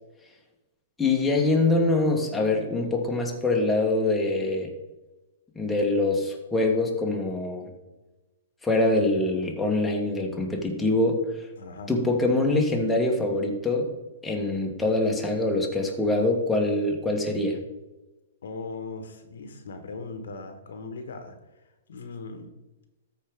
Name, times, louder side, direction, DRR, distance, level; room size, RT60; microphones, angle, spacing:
voice 1, 1.0-4.7 5.5-7.7 8.6-11.2 11.9-13.9 14.2-17.6, left 2 dB, 5° left, -1 dB, 1.4 m, -24 dB
voice 2, 11.6-11.9 18.4-21.3 21.9-22.5, left 3 dB, 75° left, 7 dB, 1.3 m, -38 dB
13.5 x 4.6 x 3.6 m, 1.1 s
hypercardioid pair, 140°, 0 cm